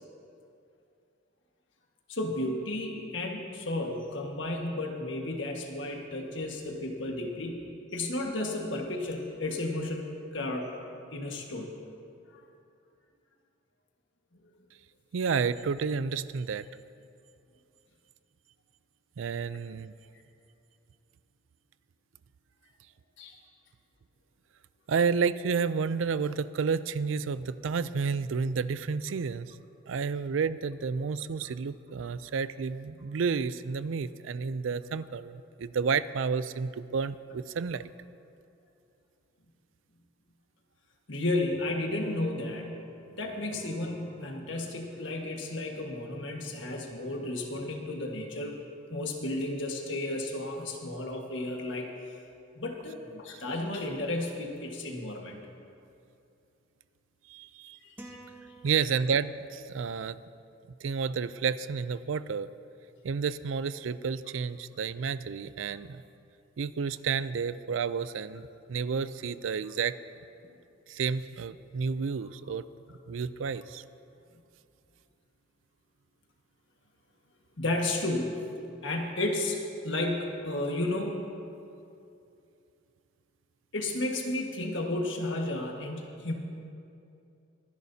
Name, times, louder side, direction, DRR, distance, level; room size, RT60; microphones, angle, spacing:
voice 1, 2.1-10.0 10.3-10.7 11.1-11.7 12.3-12.4 23.2-23.3 41.1-42.8 43.2-48.6 48.9-51.9 52.5-55.3 57.8-57.9 77.6-78.5 78.8-81.2 83.7-86.3, left 2 dB, 70° left, 1 dB, 1.6 m, -33 dB
voice 2, 15.1-16.7 19.2-19.9 24.9-29.5 29.9-37.8 57.3-57.8 58.6-60.2 60.8-62.5 63.0-66.0 66.6-69.9 70.9-72.7 73.1-73.8, right 5 dB, 85° right, 15 dB, 0.4 m, -31 dB
sound 1, 41.2-47.9, right 2 dB, 35° left, 2.7 m, -54 dB
sound 2, 58.0-59.5, right 2 dB, 10° right, 1.1 m, -49 dB
23.5 x 10.5 x 2.8 m, 2.6 s
head